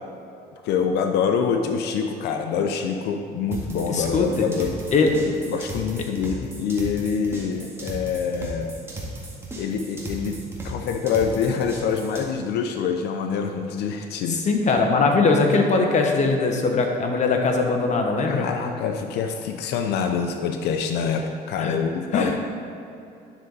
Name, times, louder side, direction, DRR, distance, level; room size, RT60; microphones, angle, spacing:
voice 1, 0.6-4.8 5.5-8.7 9.6-10.4 10.6-14.4 18.3-22.4, left 6 dB, 80° left, 4 dB, 0.7 m, -25 dB
sound 1, 3.5-12.2, right 1 dB, 15° right, 1.9 m, -36 dB
voice 2, 3.9-4.5 4.9-5.1 14.3-18.5 21.6-21.8 22.1-22.3, left 4 dB, 45° left, 2 dB, 1.2 m, -21 dB
10.0 x 6.4 x 4.0 m, 2.6 s
cardioid pair, 110°, 17 cm